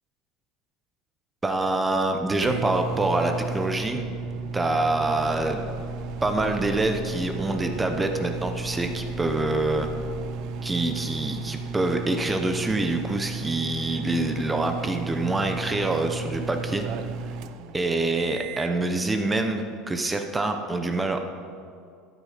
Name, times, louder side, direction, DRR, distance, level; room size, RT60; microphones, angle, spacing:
voice 1, 1.4-4.0 4.5-5.6 6.2-9.9 10.6-16.8 17.7-21.4, right 2 dB, 10° right, 6 dB, 0.8 m, -26 dB
sound 1, 1.8-18.8, right 4 dB, 55° right, 0.6 m, -34 dB
sound 2, 4.9-10.3, left 4 dB, 40° left, 1.2 m, -44 dB
13.0 x 9.6 x 5.0 m, 2.4 s
cardioid pair, 150°, 0 cm